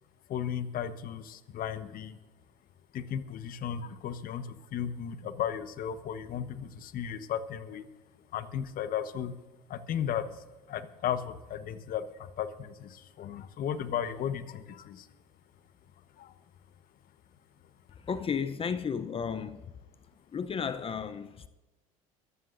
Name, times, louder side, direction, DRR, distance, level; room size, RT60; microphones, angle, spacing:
voice 1, 0.3-2.1 2.9-4.5 4.7-7.8 8.3-9.3 9.7-10.2 10.7-12.0 12.4-15.0 16.2-16.3, left 9 dB, 55° left, 1.2 m, -35 dB
voice 2, 18.1-19.7 20.3-21.5, left 6 dB, 30° left, 0.7 m, -33 dB
24.0 x 14.0 x 2.6 m
hypercardioid pair, 70°, 18 cm